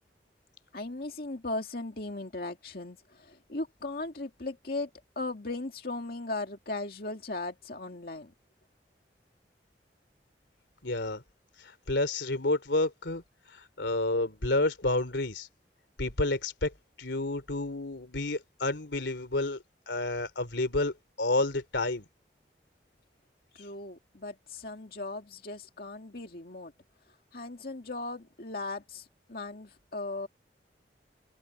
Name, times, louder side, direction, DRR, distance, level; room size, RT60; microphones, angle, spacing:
voice 1, 0.7-4.9 5.2-8.3 23.6-26.7 27.3-30.3, left 2 dB, 55° left, 2.2 m, -37 dB
voice 2, 10.8-11.2 11.9-13.2 13.5-15.5 16.0-16.7 17.0-19.6 19.9-22.1, left 2 dB, 90° left, 3.1 m, -30 dB
head